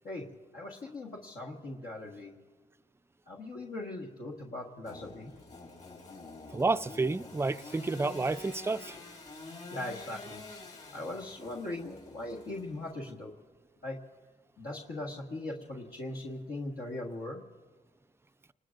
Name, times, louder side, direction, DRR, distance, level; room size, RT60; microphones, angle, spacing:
voice 1, 0.0-2.3 3.3-5.3 9.7-10.4 10.9-13.3 13.8-14.0 14.6-17.4, left 2 dB, 75° left, 1.6 m, -40 dB
Engine / Sawing, 4.8-13.1, left 3 dB, 55° left, 5.2 m, -48 dB
voice 2, 6.5-8.9, right 3 dB, 15° right, 0.4 m, -30 dB
27.5 x 20.0 x 2.6 m
cardioid pair, 65°, 16 cm